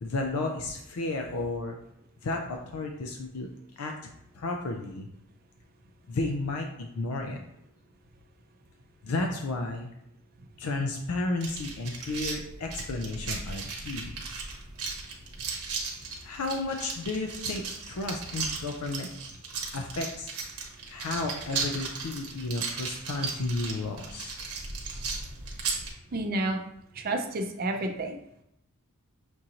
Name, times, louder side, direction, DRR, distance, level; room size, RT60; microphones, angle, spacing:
voice 1, 0.0-1.8 2.2-3.5 3.8-3.9 4.3-5.1 6.1-7.4 9.0-9.9 10.6-14.1 16.2-19.1 19.7-20.3 20.9-24.4, left 2 dB, 75° left, 3 dB, 0.4 m, -32 dB
sound 1, 11.4-25.9, right 4 dB, 90° right, 0.9 m, -36 dB
voice 2, 26.1-26.6 27.0-28.2, right 2 dB, 40° right, 4 dB, 0.5 m, -30 dB
6.1 x 2.5 x 2.8 m, 0.79 s
head